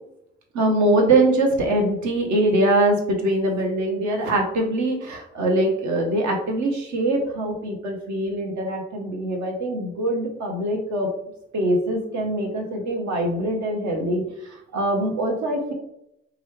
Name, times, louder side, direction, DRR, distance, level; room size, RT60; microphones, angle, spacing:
voice 1, 0.5-11.1 11.5-14.2 14.5-15.7, right 1 dB, 60° right, 1 dB, 0.8 m, -23 dB
2.9 x 2.3 x 3.1 m, 0.82 s
hypercardioid pair, 40°, 31 cm